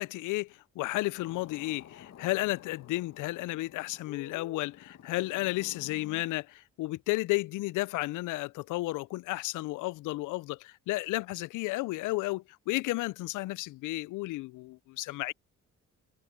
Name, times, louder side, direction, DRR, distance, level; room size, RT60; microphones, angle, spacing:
voice 1, 0.0-15.3, left 20 dB, 85° left, 0.5 m, -33 dB
sound 1, 1.2-6.2, left 9 dB, 60° left, 1.5 m, -51 dB
cardioid pair, 90°, 30 cm